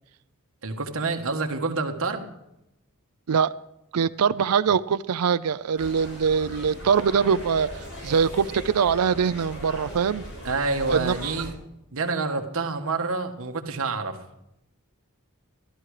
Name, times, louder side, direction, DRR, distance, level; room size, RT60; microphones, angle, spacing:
voice 1, 0.6-2.3 10.4-11.5 11.9-14.2, right 3 dB, 65° right, 5 dB, 1.5 m, -28 dB
voice 2, 3.9-7.7 8.0-10.2 10.9-11.4, right 6 dB, 85° right, 14 dB, 0.5 m, -23 dB
sound 1, 5.7-11.5, equal, 70° left, 6.4 m, -39 dB
13.5 x 13.0 x 4.9 m, 0.88 s
head